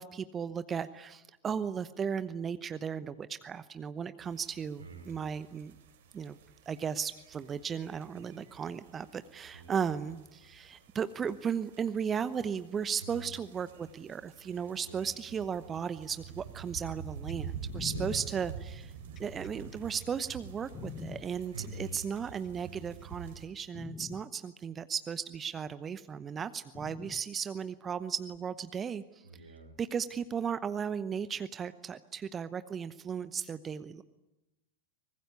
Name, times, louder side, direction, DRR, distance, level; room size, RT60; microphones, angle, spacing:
voice 1, 0.0-5.8 6.1-6.4 6.7-18.9 19.2-29.2 29.8-34.0, right 7 dB, 20° right, 14 dB, 0.9 m, -36 dB
sound 1, 4.2-23.5, right 7 dB, 55° right, 3.4 m, -47 dB
voice 2, 4.8-5.3 9.5-10.0 13.0-13.3 14.8-15.1 17.8-18.3 21.5-22.0 29.2-29.7, right 2 dB, 80° right, 5 dB, 5.3 m, -46 dB
sound 2, 17.3-21.2 22.2-22.8 23.3-23.4 23.7-24.2 25.3-25.4 26.7-27.2 28.3-28.4, left 8 dB, 25° left, 1.1 m, -45 dB
24.0 x 20.5 x 9.8 m, 0.97 s
figure-of-eight pair, 90°, 0 cm